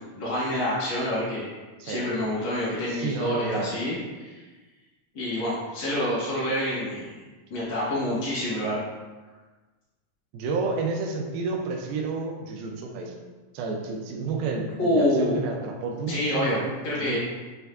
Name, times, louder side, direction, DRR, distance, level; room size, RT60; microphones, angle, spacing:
voice 1, 0.0-1.5 1.8-4.4 5.1-7.2 7.5-8.8 14.8-15.5 16.1-17.2, left 1 dB, 60° left, -8 dB, 1.1 m, -27 dB
voice 2, 2.9-3.7 10.3-13.2 13.5-16.6 17.0-17.2, right 4 dB, 80° right, 1 dB, 2.4 m, -30 dB
6.7 x 3.5 x 2.3 m, 1.3 s
omnidirectional pair, 4.4 m